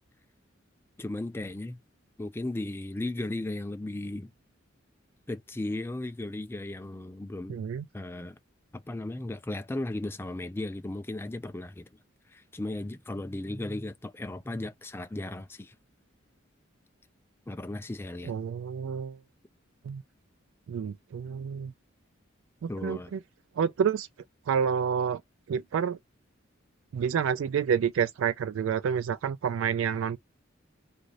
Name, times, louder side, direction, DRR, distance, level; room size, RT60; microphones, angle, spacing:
voice 1, 1.0-1.8 2.2-4.3 5.3-7.6 7.9-8.4 8.7-11.9 12.3-15.7 17.5-18.3 22.7-23.1, left 2 dB, 10° left, 0.3 m, -36 dB
voice 2, 7.5-7.9 18.2-19.2 19.8-20.0 20.7-21.7 22.6-23.2 23.6-24.1 24.5-25.2 25.5-26.0 26.9-30.2, right 7 dB, 80° right, 0.3 m, -29 dB
2.5 x 2.5 x 3.0 m
head